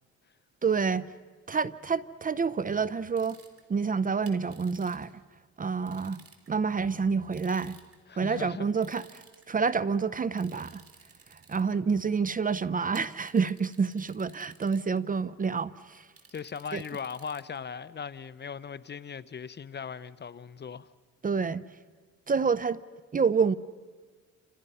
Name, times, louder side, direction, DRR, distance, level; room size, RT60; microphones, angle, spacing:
voice 1, 0.6-1.1 1.5-3.4 3.7-5.1 5.6-6.2 6.5-7.8 8.2-9.1 9.5-10.8 11.5-16.0 16.7-16.8 21.2-21.6 22.3-22.8 23.1-23.5, right 5 dB, 30° right, 0.6 m, -28 dB
sound 1, 3.2-3.6 4.3-5.1 5.9-6.5 7.3-8.0 8.8-9.4 10.4-11.7 12.9-15.0 16.2-17.6, right 5 dB, 50° right, 3.3 m, -55 dB
voice 2, 8.1-8.7 16.3-20.9, left 6 dB, 35° left, 0.7 m, -39 dB
29.5 x 27.0 x 5.6 m
cardioid pair, 90°, 30 cm